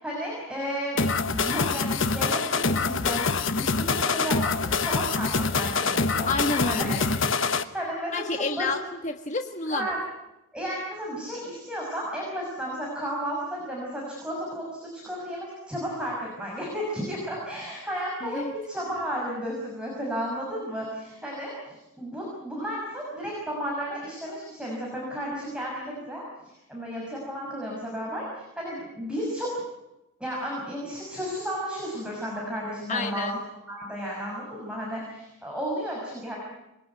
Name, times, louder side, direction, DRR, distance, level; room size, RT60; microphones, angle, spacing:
voice 1, 0.0-6.3 6.7-6.9 7.2-8.7 9.7-10.0 10.5-29.5 30.2-33.3 33.7-36.4, equal, 5° right, -4 dB, 6.3 m, -33 dB
sound 1, 1.0-7.6, left 4 dB, 65° left, 1.1 m, -25 dB
voice 2, 6.3-7.0 8.1-9.9 18.2-18.5 32.9-33.3, left 3 dB, 35° left, 4 dB, 1.4 m, -29 dB
26.5 x 21.5 x 9.4 m, 0.96 s
head